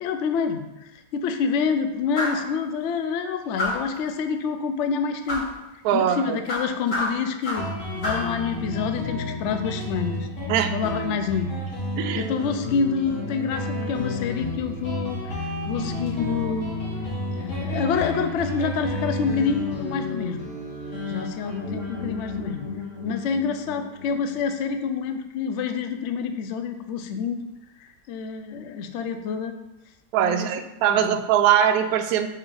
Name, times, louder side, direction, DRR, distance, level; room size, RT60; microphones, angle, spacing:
voice 1, 0.0-5.5 5.9-7.7 7.9-10.3 10.7-11.5 12.1-16.8 17.4-20.4 21.1-22.7 23.0-27.4 27.8-29.5 30.2-30.5 30.9-31.2, left 6 dB, 70° left, 7 dB, 0.6 m, -27 dB
sound 1, 2.1-2.5 3.6-4.0 5.3-5.5 6.5-7.7 8.0-8.3, left 1 dB, 85° left, 2.9 m, -28 dB
voice 2, 5.8-6.4 10.5-10.7 12.0-12.3 30.1-32.3, right 9 dB, 70° right, 7 dB, 0.9 m, -21 dB
Guitar, 7.6-24.8, left 2 dB, 45° left, 1.7 m, -31 dB
Musical instrument, 17.4-22.6, right 2 dB, 10° left, 1.1 m, -44 dB
6.2 x 4.3 x 3.9 m, 0.95 s
omnidirectional pair, 1.8 m